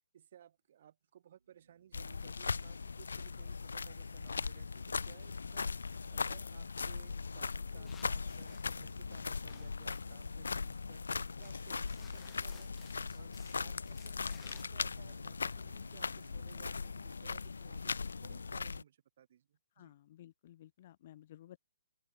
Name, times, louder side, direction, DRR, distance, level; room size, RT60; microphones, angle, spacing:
voice 1, 0.1-12.8 13.1-20.0, right 10 dB, 50° right, 7.2 m, -60 dB
sound 1, 1.4-18.6, right 4 dB, 90° right, 6.2 m, -66 dB
sound 2, 1.9-18.8, left 4 dB, 85° left, 2.8 m, -39 dB
sound 3, 7.8-10.1 10.8-10.9 11.1-14.6, left 8 dB, 10° left, 2.7 m, -61 dB
voice 2, 19.8-21.6, left 12 dB, 45° left, 4.4 m, -55 dB
open air
hypercardioid pair, 150°, 0 cm